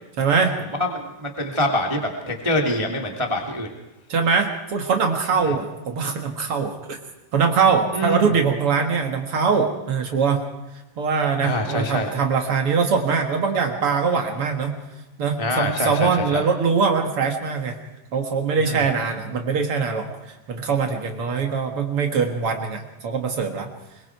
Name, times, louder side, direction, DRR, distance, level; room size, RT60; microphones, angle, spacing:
voice 1, 0.2-0.5 4.1-7.0 7.3-10.4 11.0-14.8 15.2-17.8 18.1-23.7, right 5 dB, 85° right, 3 dB, 1.2 m, -22 dB
voice 2, 0.8-3.7 5.4-5.5 7.9-8.3 11.4-12.1 15.4-16.4 18.6-18.8, left 1 dB, 15° right, 2 dB, 1.0 m, -25 dB
24.5 x 22.5 x 4.6 m, 1.0 s
omnidirectional pair, 5.3 m